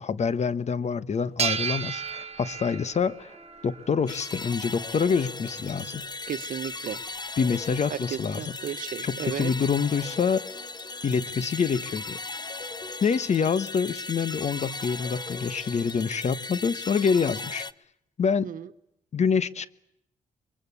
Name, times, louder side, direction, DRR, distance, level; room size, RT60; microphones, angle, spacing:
voice 1, 0.0-3.4 3.6-6.0 7.4-8.4 9.1-10.4 11.0-12.2 13.0-17.7 18.2-18.5 19.1-19.7, left 6 dB, 55° left, 1.3 m, -26 dB
sound 1, 1.4-4.3, right 7 dB, 50° right, 1.4 m, -33 dB
sound 2, 1.9-15.6, right 2 dB, 5° left, 7.4 m, -59 dB
sound 3, 4.1-17.7, left 3 dB, 30° left, 1.0 m, -37 dB
voice 2, 6.3-7.0 7.9-9.5 18.4-18.7, right 9 dB, 70° right, 1.2 m, -34 dB
25.0 x 23.0 x 8.4 m
cardioid pair, 70°, 14 cm